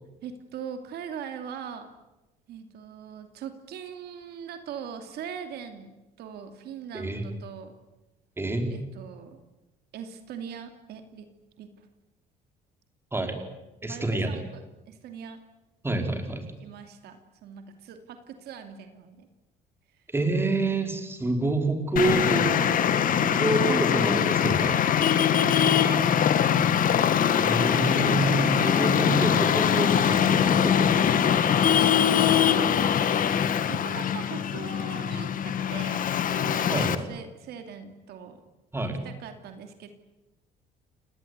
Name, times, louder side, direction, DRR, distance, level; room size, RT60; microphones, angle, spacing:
voice 1, 0.2-1.9 2.5-7.7 8.7-9.4 9.9-11.3 11.6-11.9 13.8-15.4 16.2-19.3 22.0-22.4 25.1-25.9 32.1-32.7 33.7-38.4 38.8-39.9, right 7 dB, 75° right, 7 dB, 2.6 m, -41 dB
voice 2, 8.4-8.7 13.1-13.4 13.8-14.4 15.8-16.5 20.1-22.6 23.2-24.8 27.3-31.0 31.3-31.4 36.7-37.0 38.7-39.0, right 2 dB, 15° right, 5 dB, 4.8 m, -28 dB
Traffic noise roadway noise, 22.0-37.0, left 8 dB, 55° left, 1.9 m, -22 dB
29.5 x 19.0 x 9.6 m, 1.0 s
cardioid pair, 110°, 17 cm